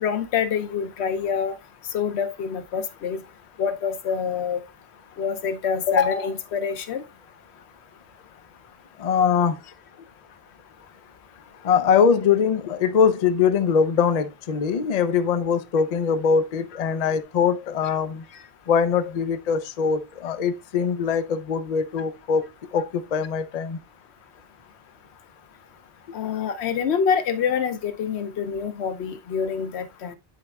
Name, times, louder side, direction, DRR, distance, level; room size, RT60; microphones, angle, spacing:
voice 1, 0.0-1.5 1.9-3.2 3.6-4.6 5.2-7.0 17.8-17.9 26.1-30.2, left 7 dB, 85° left, 1.0 m, -26 dB
voice 2, 9.0-9.6 11.6-18.2 18.7-22.4 22.7-22.8 23.1-23.8, left 6 dB, 50° left, 0.5 m, -22 dB
9.9 x 4.1 x 2.3 m
omnidirectional pair, 1.1 m